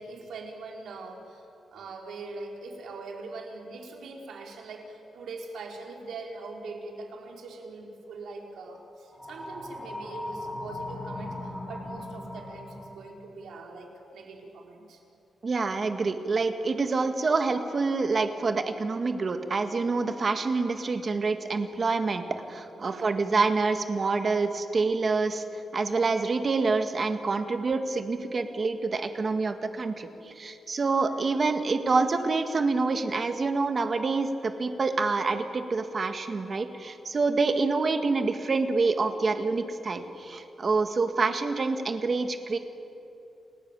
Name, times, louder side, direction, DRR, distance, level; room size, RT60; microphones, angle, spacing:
voice 1, 0.0-15.0 22.7-23.3, right 3 dB, 80° right, 1 dB, 4.4 m, -42 dB
sound 1, 9.1-13.1, left 2 dB, 15° left, 5.0 m, -38 dB
voice 2, 15.4-25.4 25.7-42.6, right 4 dB, 35° right, 7 dB, 1.9 m, -27 dB
30.0 x 19.5 x 9.1 m, 2.8 s
wide cardioid pair, 150°, 0 cm